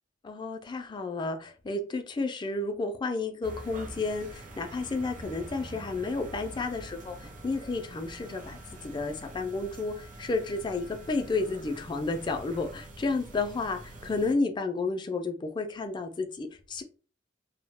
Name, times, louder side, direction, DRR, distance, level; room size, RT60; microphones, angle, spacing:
voice 1, 0.2-8.6 8.8-16.8, left 3 dB, 25° left, 0.3 m, -31 dB
sound 1, 3.4-14.3, right 1 dB, 45° right, 0.6 m, -45 dB
2.2 x 2.1 x 3.3 m
head